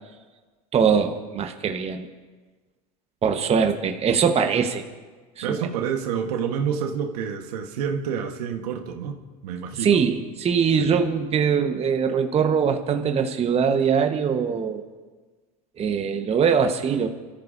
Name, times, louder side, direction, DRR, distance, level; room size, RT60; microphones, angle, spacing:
voice 1, 0.7-2.1 3.2-4.8 5.4-5.5 9.8-14.8 15.8-17.1, right 6 dB, 30° right, 5 dB, 1.4 m, -22 dB
voice 2, 5.4-9.2 9.4-10.0 10.8-11.1, right 7 dB, 75° right, 4 dB, 1.5 m, -28 dB
29.0 x 14.0 x 2.8 m, 1.4 s
hypercardioid pair, 95°, 20 cm